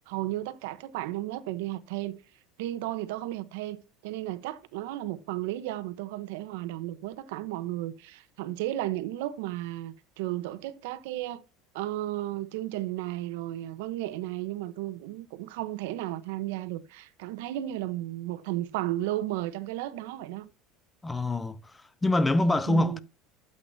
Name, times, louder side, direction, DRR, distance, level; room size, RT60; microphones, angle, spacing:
voice 1, 0.1-2.2 2.6-11.4 11.7-20.5 22.7-23.0, right 15 dB, 85° right, 1.0 m, -34 dB
voice 2, 21.0-21.6 22.0-23.0, left 2 dB, 10° left, 0.6 m, -24 dB
12.0 x 8.0 x 2.8 m
cardioid pair, 160°, 0 cm